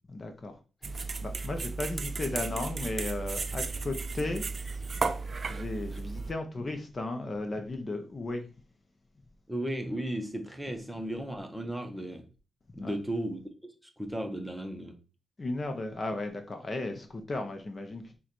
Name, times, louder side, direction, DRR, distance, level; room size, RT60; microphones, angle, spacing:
voice 1, 0.1-0.6 0.8-4.4 4.8-5.2 5.5-8.5 12.8-12.9 15.4-18.2, left 2 dB, 35° left, 0.6 m, -35 dB
sound 1, 0.8-6.3, right 4 dB, 45° right, 0.3 m, -34 dB
voice 2, 9.5-12.3 12.8-13.4 14.0-14.9, right 1 dB, 5° right, 0.8 m, -35 dB
6.2 x 2.2 x 3.0 m
cardioid pair, 85°, 0 cm